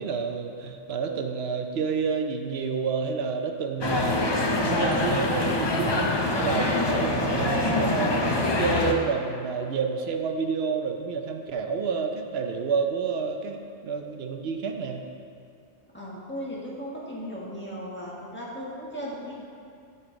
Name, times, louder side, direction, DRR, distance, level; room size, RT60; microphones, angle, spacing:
voice 1, 0.0-4.3 4.6-8.2 8.6-15.1, right 5 dB, 65° right, 5 dB, 0.8 m, -29 dB
sound 1, 3.8-8.9, left 2 dB, 35° left, 0.4 m, -25 dB
voice 2, 15.9-19.3, equal, 10° left, -6 dB, 1.4 m, -36 dB
9.3 x 5.7 x 3.9 m, 2.4 s
omnidirectional pair, 1.2 m